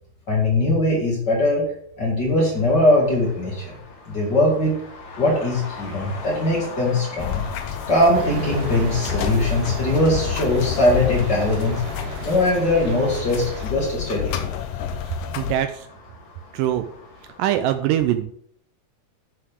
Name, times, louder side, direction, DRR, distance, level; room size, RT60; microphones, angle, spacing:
voice 1, 0.3-1.7 2.0-3.7 4.1-4.8 5.2-7.4 7.9-11.8 12.2-14.3, left 1 dB, 35° left, -3 dB, 2.4 m, -20 dB
Traffic noise roadway noise, 2.5-17.5, left 3 dB, 55° left, 3.2 m, -41 dB
sound 1, 7.2-15.6, left 10 dB, 75° left, 2.3 m, -30 dB
sound 2, 8.1-13.7, equal, 60° right, 2.1 m, -32 dB
voice 2, 15.1-15.9 16.5-16.9 17.4-18.3, right 11 dB, 80° right, 9 dB, 2.1 m, -23 dB
10.5 x 7.0 x 3.6 m, 0.65 s
omnidirectional pair, 4.1 m